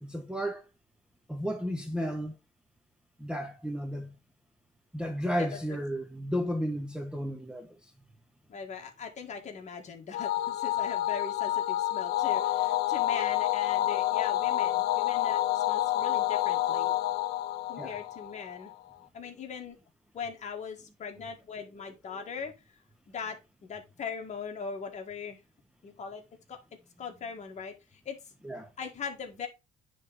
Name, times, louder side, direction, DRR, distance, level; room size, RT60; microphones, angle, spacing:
voice 1, 0.0-0.6 1.3-2.3 3.2-4.1 4.9-7.8 17.8-17.9 28.4-28.7, equal, 5° right, 0.9 m, -33 dB
voice 2, 8.5-16.9 17.7-18.7 19.1-19.8 20.1-22.5 23.1-25.4 25.8-26.2 26.5-26.6 27.0-28.2 28.8-29.5, left 6 dB, 45° left, 1.7 m, -40 dB
sound 1, 10.1-18.7, left 14 dB, 70° left, 0.6 m, -28 dB
9.6 x 3.6 x 3.5 m
cardioid pair, 110°, 17 cm